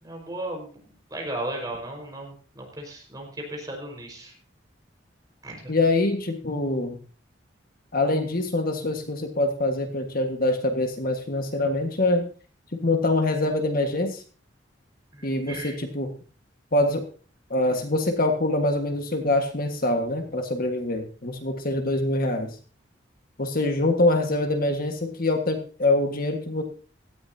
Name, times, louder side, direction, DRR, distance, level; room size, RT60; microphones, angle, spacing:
voice 1, 0.0-0.8 1.1-4.3 5.4-5.7 15.1-15.8, right 1 dB, 20° right, 1 dB, 5.1 m, -35 dB
voice 2, 5.7-7.0 7.9-12.3 12.7-14.2 15.2-16.1 16.7-17.0 17.5-22.6 23.4-26.6, left 2 dB, 50° left, 5 dB, 1.7 m, -24 dB
17.5 x 14.0 x 2.8 m, 0.38 s
head